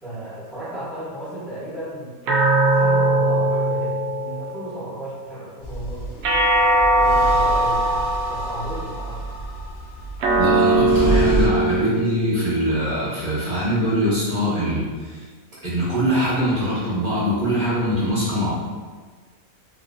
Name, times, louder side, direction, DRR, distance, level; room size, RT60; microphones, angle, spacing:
voice 1, 0.0-6.2 7.0-7.9 8.3-9.2, right 1 dB, ahead, -13 dB, 1.0 m, -34 dB
sound 1, 2.3-4.9 6.2-8.8 10.2-12.8, right 2 dB, 65° right, 0.7 m, -20 dB
sound 2, 5.6-11.5, right 2 dB, 65° left, 0.7 m, -28 dB
voice 2, 10.4-15.2 15.6-18.5, equal, 30° right, -10 dB, 1.1 m, -23 dB
3.2 x 2.8 x 2.6 m, 1.4 s
omnidirectional pair, 1.5 m